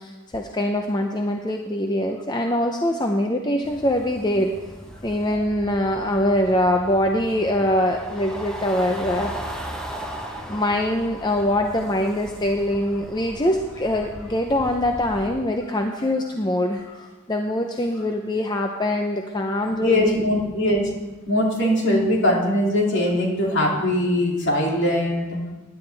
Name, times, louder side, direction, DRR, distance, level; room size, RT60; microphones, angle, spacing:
voice 1, 0.0-4.5 5.0-9.3 10.5-16.8 17.3-20.2, left 1 dB, 20° left, 3 dB, 0.6 m, -23 dB
sound 1, 3.6-15.3, equal, 5° left, 1.0 m, -37 dB
voice 2, 19.8-20.9 21.3-25.4, left 1 dB, 55° left, -2 dB, 2.6 m, -21 dB
16.0 x 10.5 x 3.4 m, 1.2 s
head